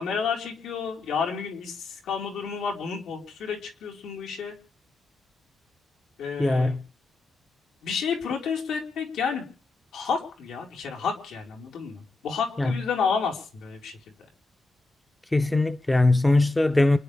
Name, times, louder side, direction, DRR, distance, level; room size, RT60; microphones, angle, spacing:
voice 1, 0.0-4.5 6.2-6.8 7.8-9.4 9.9-14.0, left 6 dB, 80° left, 4.8 m, -30 dB
voice 2, 6.4-6.8 12.6-12.8 15.3-17.0, left 2 dB, 10° left, 0.6 m, -21 dB
28.5 x 10.5 x 3.5 m
cardioid pair, 165°, 0 cm